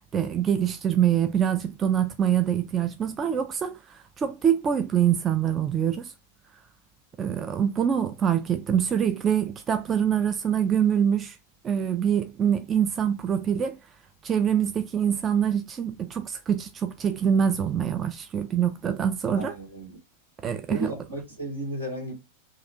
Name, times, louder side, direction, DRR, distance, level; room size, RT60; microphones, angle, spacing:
voice 1, 0.1-6.1 7.2-11.4 11.6-13.8 14.2-19.5 20.4-20.9, right 8 dB, 25° right, 0.3 m, -25 dB
voice 2, 19.3-20.0 20.7-22.1, right 1 dB, 80° right, 1.8 m, -34 dB
4.6 x 2.4 x 2.7 m
figure-of-eight pair, 90°, 0 cm